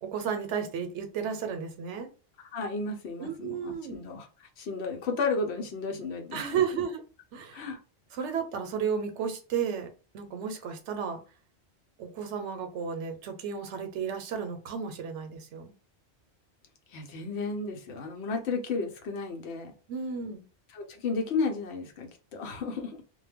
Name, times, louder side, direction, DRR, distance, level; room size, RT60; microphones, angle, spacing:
voice 1, 0.0-2.1 3.2-4.0 6.3-7.0 7.3-7.7 8.1-9.9 10.1-11.2 12.0-15.7 19.9-20.4, right 7 dB, 85° right, 0.9 m, -33 dB
voice 2, 2.5-4.3 4.6-6.8 7.5-7.8 16.9-19.7 20.7-23.0, left 4 dB, 70° left, 0.9 m, -33 dB
2.2 x 2.1 x 3.4 m
omnidirectional pair, 1.2 m